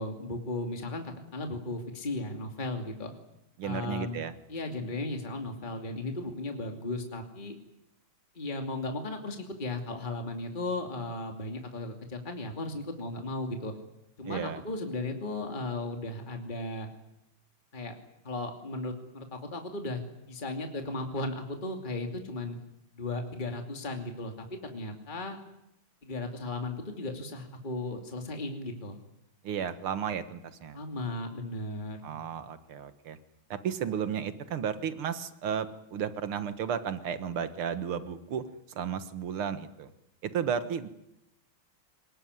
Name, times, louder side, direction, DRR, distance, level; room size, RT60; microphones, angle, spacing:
voice 1, 0.0-3.1 3.6-7.5 8.3-13.7 14.2-16.9 17.7-17.9 18.2-20.0 20.3-22.6 23.0-25.4 26.0-29.0 30.7-32.0, left 2 dB, 20° left, 4 dB, 2.7 m, -36 dB
voice 2, 3.6-4.3 14.3-14.6 29.4-30.8 32.0-33.2 33.5-39.9 40.2-40.9, right 8 dB, 75° right, 11 dB, 2.3 m, -33 dB
23.5 x 21.0 x 9.6 m, 0.84 s
omnidirectional pair, 2.4 m